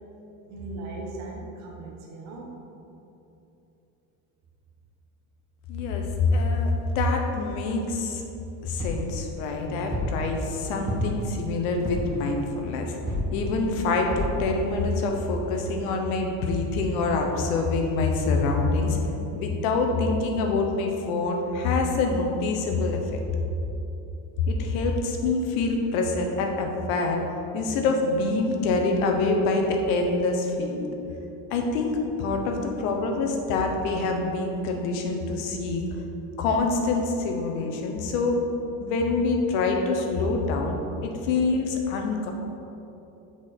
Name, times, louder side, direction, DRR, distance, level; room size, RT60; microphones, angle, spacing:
voice 1, 0.5-2.6 10.3-10.5, right 2 dB, 40° right, -1 dB, 1.1 m, -38 dB
voice 2, 5.7-8.2 8.6-12.9 13.3-19.0 19.4-23.0 24.5-27.2 27.5-30.8 31.5-35.8 36.4-38.4 38.8-40.8 41.0-42.3, left 3 dB, 85° left, 3 dB, 1.0 m, -25 dB
sound 1, 8.8-9.1 9.9-10.2 10.9-11.3 11.9-12.2 13.1-13.4 14.1-14.4 15.0-15.1 15.3-15.4, left 1 dB, 10° right, 0.5 m, -29 dB
6.3 x 4.8 x 4.1 m, 2.9 s
cardioid pair, 175°, 40 cm